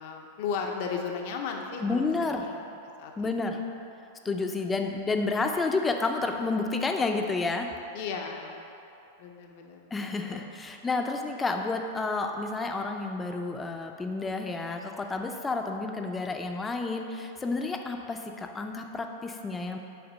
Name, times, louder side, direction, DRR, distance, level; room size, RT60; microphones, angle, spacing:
voice 1, 0.0-2.6 3.0-3.6 4.2-4.7 7.9-8.6 9.2-9.9 10.3-10.5, left 5 dB, 60° left, 2 dB, 0.6 m, -36 dB
voice 2, 1.8-2.4 3.2-3.6 4.2-7.7 9.9-19.8, left 3 dB, 15° left, 3 dB, 0.5 m, -30 dB
5.8 x 3.3 x 5.4 m, 2.8 s
hypercardioid pair, 120°, 0 cm